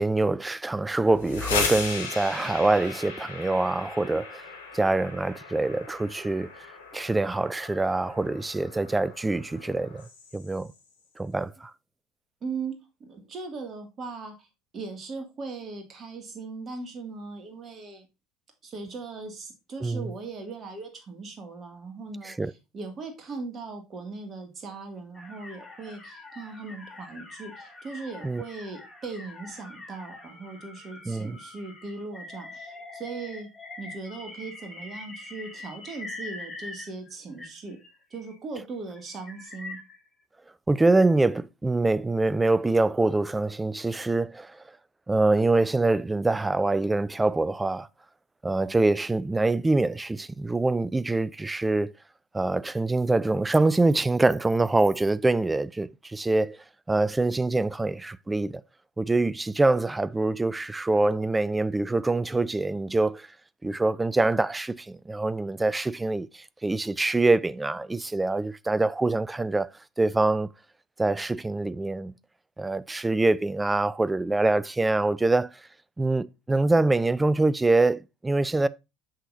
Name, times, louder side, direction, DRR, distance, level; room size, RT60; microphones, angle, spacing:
voice 1, 0.0-4.5 4.7-6.5 6.9-10.1 10.3-10.7 11.2-11.7 19.8-20.1 22.2-22.5 28.2-28.4 31.1-31.4 40.7-44.6 45.1-47.9 48.4-51.9 52.3-56.6 56.9-58.6 59.0-63.3 63.6-69.7 70.0-70.5 71.0-72.1 72.6-75.5 76.0-78.7, right 2 dB, 10° right, 0.4 m, -25 dB
sound 1, 1.0-10.8, left 5 dB, 70° left, 1.5 m, -36 dB
voice 2, 12.4-12.7 13.0-14.5 14.7-18.1 18.6-22.4 22.7-33.5 33.8-37.8 38.1-39.8, right 4 dB, 30° right, 2.1 m, -39 dB
sound 2, 25.1-37.1 37.4-38.4 39.0-40.1, left 2 dB, 10° left, 2.7 m, -44 dB
7.5 x 6.2 x 2.6 m
figure-of-eight pair, 70°, 0 cm